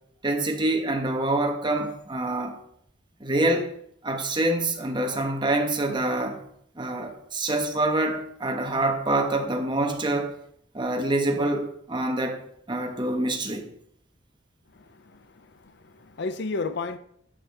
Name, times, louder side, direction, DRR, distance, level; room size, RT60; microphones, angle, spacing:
voice 1, 0.2-2.6 3.2-3.7 4.0-6.4 6.8-10.3 10.7-12.4 12.7-13.7, right 2 dB, 25° right, 1.2 m, -26 dB
voice 2, 14.7-17.0, left 3 dB, 60° left, 0.6 m, -33 dB
11.0 x 7.1 x 3.5 m
head